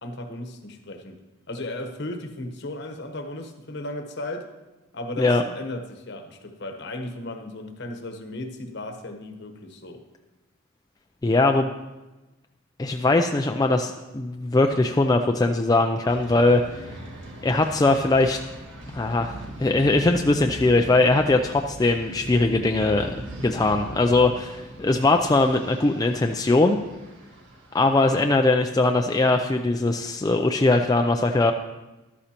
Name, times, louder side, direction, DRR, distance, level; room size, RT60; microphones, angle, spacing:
voice 1, 0.0-1.2 1.5-4.5 4.9-10.0, left 1 dB, 55° left, 5 dB, 1.0 m, -35 dB
voice 2, 11.2-11.7 12.8-16.9 17.4-18.4 18.9-23.1 23.4-26.8 27.7-31.5, left 2 dB, 15° left, 4 dB, 0.3 m, -21 dB
sound 1, 16.1-28.3, right 1 dB, 60° right, 1.7 m, -40 dB
13.0 x 12.0 x 2.9 m, 1.1 s
head